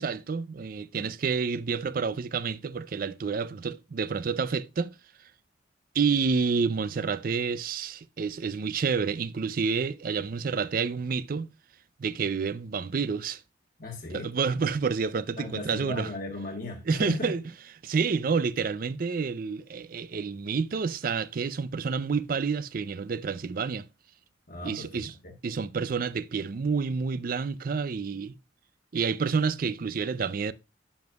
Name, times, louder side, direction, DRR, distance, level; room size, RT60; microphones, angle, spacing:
voice 1, 0.0-4.9 5.9-11.5 12.0-13.4 14.1-16.1 16.9-17.4 17.8-23.9 24.6-25.1 25.4-28.3 28.9-30.5, right 5 dB, 50° right, 0.4 m, -29 dB
voice 2, 13.8-14.3 15.4-17.3 24.5-25.3, left 2 dB, 50° left, 1.2 m, -36 dB
9.5 x 7.2 x 2.3 m
head